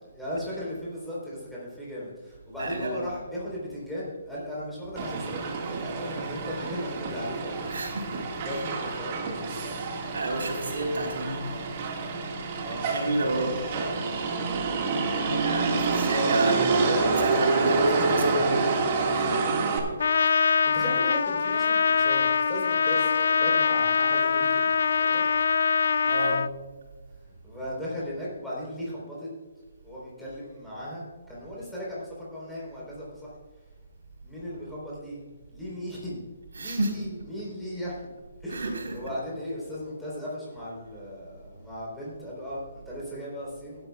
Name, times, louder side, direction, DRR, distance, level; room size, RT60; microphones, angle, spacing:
voice 1, 0.1-8.0 8.4-9.7 12.6-12.9 13.3-14.9 15.2-17.3 20.4-25.2 27.4-29.3 29.8-33.3 34.2-35.2 35.5-36.2 36.5-38.0 38.4-43.9, equal, ahead, -8 dB, 3.9 m, -37 dB
voice 2, 2.6-3.0 7.7-8.6 10.1-11.5 12.7-13.6 15.4-18.6 26.0-26.5 36.5-37.1 38.5-39.1, right 2 dB, 90° right, 1 dB, 3.9 m, -30 dB
Motor vehicle (road), 5.0-19.8, right 4 dB, 30° right, 1.8 m, -27 dB
Trumpet, 20.0-26.5, left 5 dB, 60° left, 0.3 m, -23 dB
16.5 x 11.5 x 2.4 m, 1.4 s
hypercardioid pair, 170°, 0 cm